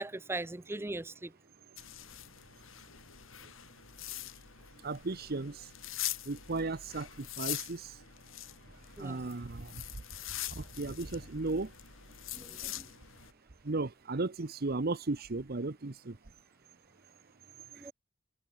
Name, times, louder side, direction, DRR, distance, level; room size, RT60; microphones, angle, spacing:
voice 1, 0.0-1.3 9.0-9.2 12.3-12.9 17.7-17.9, right 2 dB, 10° right, 0.5 m, -39 dB
sound 1, 1.8-13.3, left 13 dB, 75° left, 4.0 m, -43 dB
voice 2, 4.8-5.7 6.2-8.0 9.0-9.8 10.6-11.7 13.6-16.2, right 3 dB, 50° right, 0.9 m, -35 dB
head